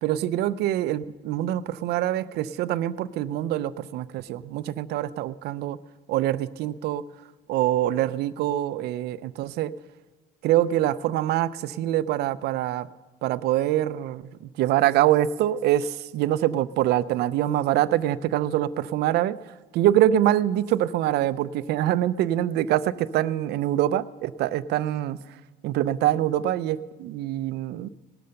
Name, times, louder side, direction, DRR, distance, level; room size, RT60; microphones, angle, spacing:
voice 1, 0.0-5.8 6.1-7.0 7.5-9.7 10.4-12.9 13.2-19.4 19.7-25.4 25.6-27.9, right 13 dB, 75° right, 15 dB, 0.5 m, -24 dB
18.0 x 6.8 x 6.5 m, 1.2 s
cardioid pair, 110°, 17 cm